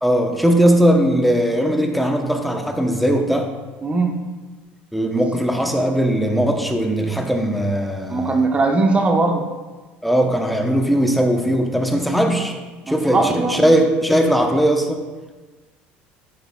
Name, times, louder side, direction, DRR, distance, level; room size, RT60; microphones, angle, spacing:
voice 1, 0.0-3.5 4.9-8.4 10.0-12.6 12.9-15.0, equal, ahead, 3 dB, 0.9 m, -19 dB
voice 2, 3.8-4.2 8.1-9.5 12.8-13.6, right 3 dB, 25° right, 4 dB, 1.1 m, -19 dB
10.0 x 6.5 x 2.4 m, 1.3 s
supercardioid pair, 95°, 5 cm